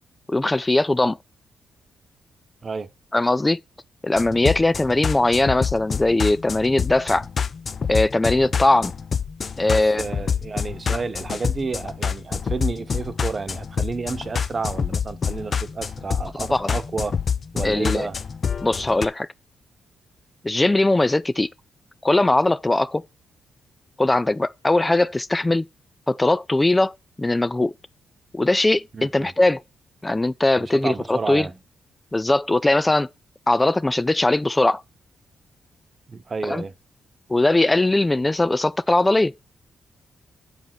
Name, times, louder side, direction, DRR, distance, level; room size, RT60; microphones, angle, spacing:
voice 1, 0.3-1.2 3.1-3.6 4.0-7.3 7.9-8.9 9.6-10.0 10.9-11.0 16.5-16.7 17.6-18.1 18.6-19.3 20.4-21.5 22.0-23.0 24.0-25.6 26.1-27.7 28.3-29.6 30.0-31.5 32.1-33.1 33.5-34.8 36.4-36.6 37.3-39.3, left 2 dB, 20° left, 0.4 m, -20 dB
sound 1, 4.2-19.1, left 6 dB, 50° left, 0.7 m, -27 dB
voice 2, 9.7-17.1 17.5-18.2 28.9-29.3 30.6-31.6 36.1-36.7, right 4 dB, 45° right, 1.0 m, -31 dB
6.8 x 5.1 x 6.0 m
supercardioid pair, 55°, 0 cm